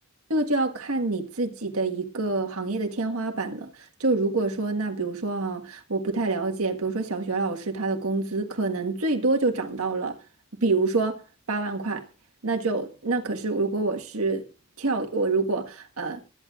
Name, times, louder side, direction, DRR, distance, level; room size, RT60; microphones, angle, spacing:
voice 1, 0.3-10.2 10.6-11.2 11.5-12.0 12.4-14.4 14.8-16.2, right 3 dB, 80° right, 1.5 m, -27 dB
19.5 x 12.5 x 2.4 m
head